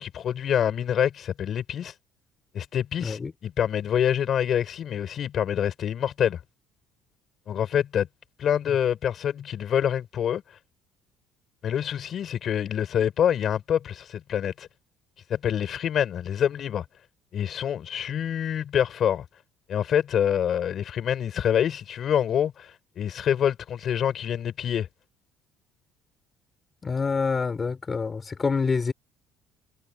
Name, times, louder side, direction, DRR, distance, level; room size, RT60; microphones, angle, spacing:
voice 1, 0.0-1.9 2.5-6.4 7.5-8.1 8.4-10.4 11.6-14.7 15.3-16.8 17.3-19.2 19.7-22.7 23.0-24.9, left 9 dB, 40° left, 5.8 m, -26 dB
voice 2, 3.0-3.3 26.8-28.9, left 4 dB, 20° left, 7.0 m, -26 dB
cardioid pair, 160°, 0 cm